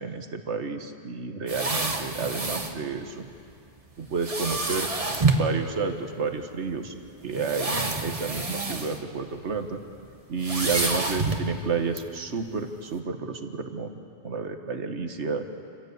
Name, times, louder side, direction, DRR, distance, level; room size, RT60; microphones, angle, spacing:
voice 1, 0.0-3.3 4.0-6.9 7.2-9.8 10.3-15.5, right 4 dB, 80° right, 6 dB, 1.7 m, -31 dB
sound 1, 1.5-2.8 4.2-5.5 6.4-6.5 7.3-9.0 9.3-9.6 10.4-11.5 12.0-12.1, right 3 dB, 30° right, 1.4 m, -28 dB
28.0 x 16.0 x 8.1 m, 2.5 s
omnidirectional pair, 1.2 m